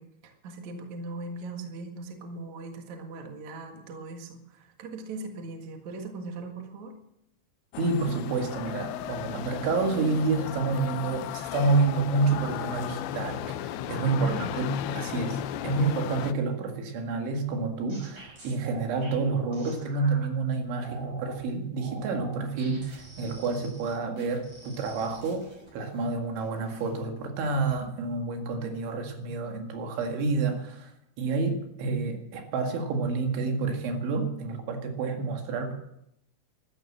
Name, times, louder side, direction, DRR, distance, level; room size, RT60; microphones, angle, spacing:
voice 1, 0.0-6.9 13.9-14.5, right 3 dB, 55° right, 4 dB, 2.2 m, -40 dB
sound 1, 7.7-16.3, left 11 dB, 80° left, 2.7 m, -35 dB
voice 2, 7.8-25.4 25.7-30.9 31.2-35.7, right 3 dB, 70° right, 4 dB, 4.3 m, -29 dB
sound 2, 17.4-20.3 20.7-21.4 21.8-26.0 26.3-27.0 27.4-27.7, right 2 dB, 25° right, 6.5 m, -46 dB
13.5 x 13.0 x 7.4 m, 0.80 s
omnidirectional pair, 5.7 m